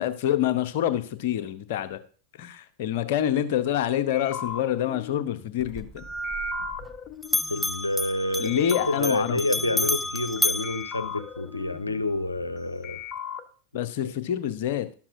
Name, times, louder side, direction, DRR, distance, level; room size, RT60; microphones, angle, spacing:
voice 1, 0.0-2.0 2.4-6.0 8.4-9.4 13.7-14.9, left 11 dB, 50° left, 10 dB, 0.9 m, -26 dB
sound 1, 4.1-8.1 8.4-10.4 10.6-12.6 12.8-13.4, left 3 dB, 25° left, 1.1 m, -37 dB
Bell, 5.6-7.0 7.2-11.7, left 2 dB, 5° left, 0.4 m, -31 dB
voice 2, 7.5-13.0 14.0-14.1, left 2 dB, 80° left, 10 dB, 0.6 m, -28 dB
12.5 x 7.3 x 2.6 m, 0.40 s
figure-of-eight pair, 90°, 0 cm